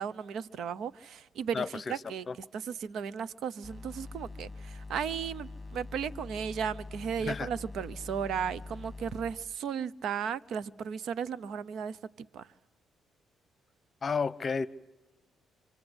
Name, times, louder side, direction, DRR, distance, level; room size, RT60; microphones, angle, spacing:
voice 1, 0.0-2.3 2.5-12.0 12.3-12.5, right 7 dB, 70° right, 17 dB, 0.8 m, -35 dB
voice 2, 1.5-2.0 2.3-2.4 7.2-7.5 14.0-14.7, left 5 dB, 40° left, 16 dB, 0.9 m, -32 dB
sound 1, 3.6-9.4, left 3 dB, 10° left, 3.3 m, -44 dB
27.0 x 25.0 x 8.1 m, 1.1 s
cardioid pair, 90°, 0 cm